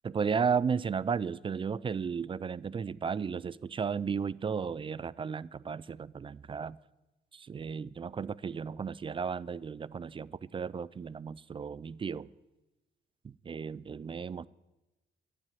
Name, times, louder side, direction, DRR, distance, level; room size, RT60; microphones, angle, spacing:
voice 1, 0.0-6.8 7.3-12.3 13.2-14.5, right 6 dB, 25° right, 0.3 m, -34 dB
12.0 x 7.6 x 9.3 m
cardioid pair, 90°, 20 cm